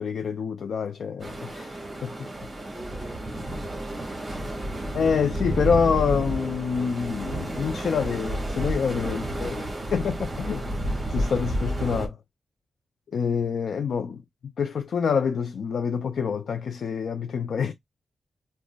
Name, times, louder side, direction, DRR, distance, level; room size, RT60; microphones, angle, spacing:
voice 1, 0.0-2.1 4.9-9.5 9.9-10.7 11.1-12.2 13.1-17.7, left 6 dB, 65° left, 0.3 m, -27 dB
sound 1, 1.2-12.1, right 1 dB, 20° right, 1.4 m, -31 dB
voice 2, 2.7-5.2 9.0-9.9, equal, 15° left, 1.2 m, -46 dB
4.9 x 2.0 x 2.2 m
wide cardioid pair, 135°, 0 cm